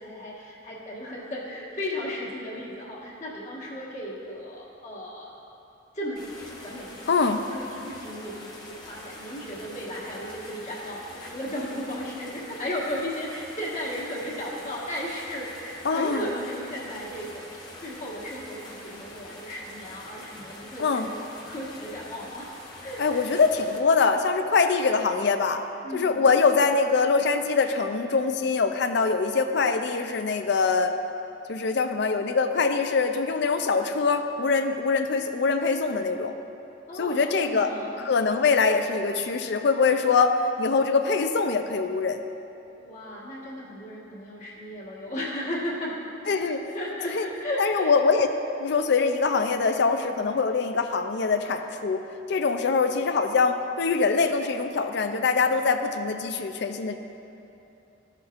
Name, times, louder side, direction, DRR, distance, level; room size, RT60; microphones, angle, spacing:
voice 1, 0.0-5.3 5.9-7.2 7.5-17.5 17.8-21.2 21.5-22.4 22.8-23.3 25.8-26.2 36.9-37.9 42.8-46.0 46.3-47.9, equal, 40° left, -5 dB, 1.5 m, -35 dB
sound 1, 6.2-23.8, left 1 dB, 20° left, 1.1 m, -44 dB
voice 2, 7.1-7.4 15.8-16.2 20.8-21.1 23.0-25.6 25.9-30.9 31.5-36.3 36.9-37.7 38.1-42.2 46.3-46.6 47.1-47.3 47.6-48.3 48.6-57.0, left 4 dB, 65° left, 7 dB, 0.5 m, -23 dB
14.0 x 6.4 x 2.5 m, 2.9 s
head